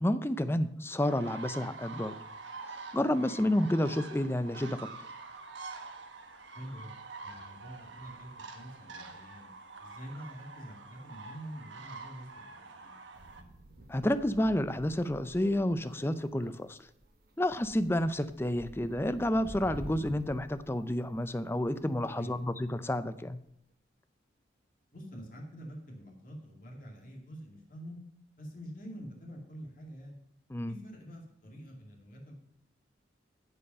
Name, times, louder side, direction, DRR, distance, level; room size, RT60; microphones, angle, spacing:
voice 1, 0.0-2.2 2.9-4.9 13.9-16.8 17.4-23.4 30.5-30.8, left 1 dB, 15° left, 12 dB, 0.5 m, -30 dB
sound 1, 1.0-13.4, right 4 dB, 85° right, 1.3 m, -46 dB
voice 2, 6.5-6.9 7.2-9.5 9.8-12.3 12.7-12.9 22.1-22.6 24.9-28.0 28.4-30.2 30.7-32.3, equal, 45° left, 0 dB, 2.4 m, -46 dB
sound 2, 13.1-22.7, right 1 dB, 55° right, 1.2 m, -50 dB
15.5 x 5.5 x 5.4 m, 0.76 s
head